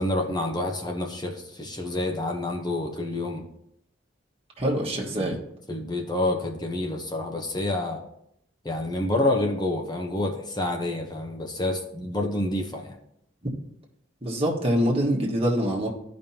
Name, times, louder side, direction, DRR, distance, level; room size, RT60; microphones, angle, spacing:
voice 1, 0.0-3.4 5.2-5.3 5.7-8.0 8.6-12.9, left 1 dB, 20° left, 2 dB, 1.0 m, -28 dB
voice 2, 4.6-5.4 14.2-15.9, equal, 30° right, -3 dB, 1.6 m, -24 dB
14.5 x 5.3 x 2.9 m, 0.77 s
head